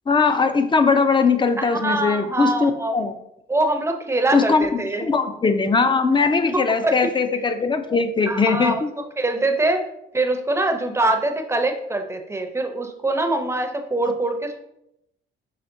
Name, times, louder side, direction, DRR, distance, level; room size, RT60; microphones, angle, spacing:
voice 1, 0.1-3.1 4.3-8.9, left 4 dB, 25° left, 9 dB, 0.5 m, -20 dB
voice 2, 1.6-3.0 3.5-5.1 6.5-7.0 8.3-8.8 9.2-9.8 10.1-14.6, right 2 dB, 15° right, 5 dB, 0.7 m, -23 dB
5.7 x 3.3 x 2.6 m, 0.81 s
cardioid pair, 90°, 20 cm